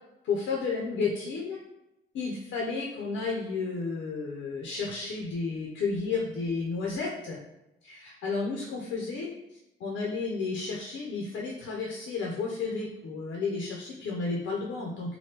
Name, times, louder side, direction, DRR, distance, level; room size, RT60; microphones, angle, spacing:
voice 1, 0.2-1.6 2.1-7.4 7.8-9.3 9.8-15.2, left 4 dB, 75° left, -2 dB, 0.6 m, -32 dB
2.9 x 2.2 x 3.3 m, 0.92 s
cardioid pair, 90°, 20 cm